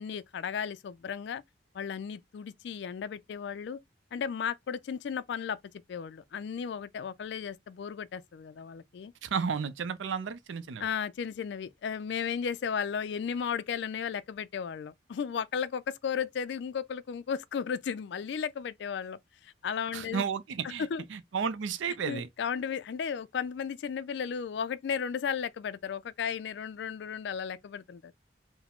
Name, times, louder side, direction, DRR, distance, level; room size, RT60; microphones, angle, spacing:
voice 1, 0.0-1.4 1.7-3.8 4.1-5.6 5.9-9.1 10.8-20.2 20.6-21.0 22.1-28.1, left 7 dB, 65° left, 0.3 m, -34 dB
voice 2, 9.2-10.9 19.9-22.3, right 6 dB, 85° right, 0.4 m, -33 dB
4.7 x 2.0 x 3.5 m
head